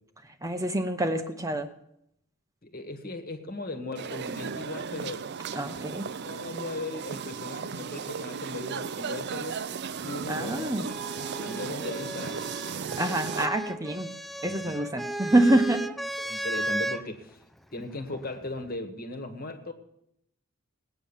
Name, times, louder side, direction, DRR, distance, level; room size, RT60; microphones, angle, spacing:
voice 1, 0.4-1.7 5.5-6.1 10.3-10.8 13.0-14.1 14.4-15.8, right 1 dB, 15° right, 7 dB, 0.8 m, -26 dB
voice 2, 2.6-5.3 5.7-5.8 6.2-9.6 10.0-11.0 11.4-12.5 14.5-14.7 16.2-17.4 17.7-19.7, left 2 dB, 45° left, 7 dB, 1.7 m, -38 dB
sound 1, 3.9-13.5, right 6 dB, 50° right, 0.5 m, -35 dB
sound 2, 10.4-17.0 18.1-18.8, right 1 dB, ahead, 0.5 m, -35 dB
18.5 x 9.2 x 7.2 m, 0.79 s
head